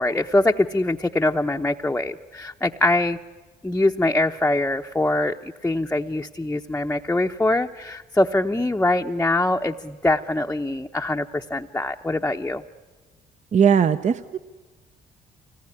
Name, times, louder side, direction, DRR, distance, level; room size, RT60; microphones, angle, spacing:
voice 1, 0.0-3.2 3.6-12.6, left 2 dB, 10° left, 3 dB, 0.8 m, -23 dB
voice 2, 13.5-14.4, right 7 dB, 45° right, 12 dB, 0.7 m, -19 dB
25.0 x 20.0 x 9.9 m, 1.3 s
supercardioid pair, 75°, 17 cm